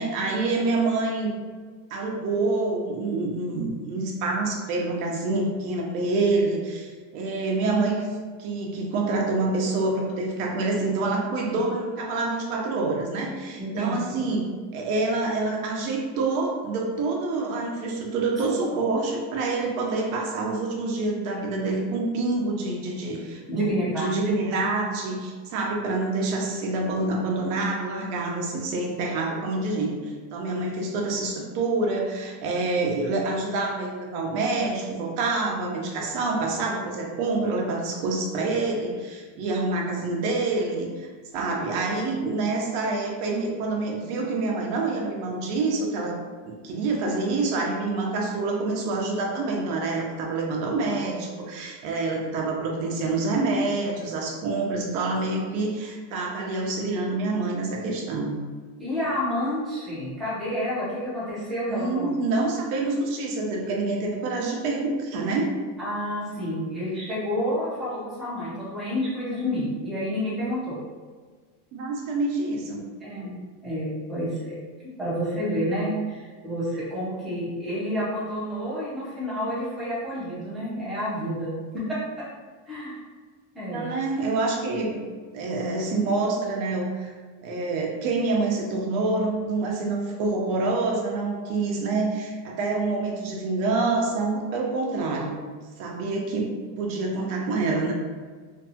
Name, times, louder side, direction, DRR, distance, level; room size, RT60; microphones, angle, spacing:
voice 1, 0.0-1.3 1.9-8.1 8.4-14.5 14.7-46.2 46.5-58.4 61.7-65.5 71.7-72.9 83.6-85.0 85.3-87.1 87.4-95.4 95.8-97.9, right 3 dB, 65° right, 0 dB, 0.7 m, -27 dB
voice 2, 13.6-14.2 18.7-18.8 23.5-24.1 58.8-62.1 65.8-70.8 73.0-73.4 73.6-74.6 75.0-82.2 82.7-83.0 83.5-83.9, equal, ahead, -11 dB, 0.5 m, -29 dB
2.6 x 2.3 x 2.7 m, 1.5 s
cardioid pair, 155°, 47 cm